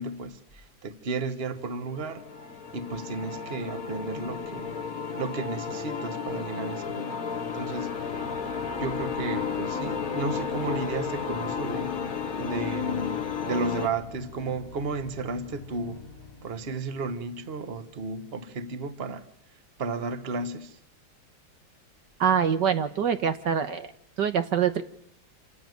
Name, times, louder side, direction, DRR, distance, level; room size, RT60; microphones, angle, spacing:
voice 1, 0.0-2.2 2.7-4.8 5.2-7.2 7.5-8.0 8.8-12.1 12.4-16.0 16.4-19.2 19.8-20.8, right 3 dB, 35° right, 11 dB, 1.4 m, -33 dB
sound 1, 2.0-13.9, left 6 dB, 50° left, 1.5 m, -33 dB
sound 2, 7.4-18.4, left 4 dB, 25° left, 1.6 m, -44 dB
voice 2, 22.2-23.9 24.2-24.8, right 7 dB, 65° right, 9 dB, 1.7 m, -24 dB
27.5 x 15.5 x 9.5 m, 0.73 s
omnidirectional pair, 2.1 m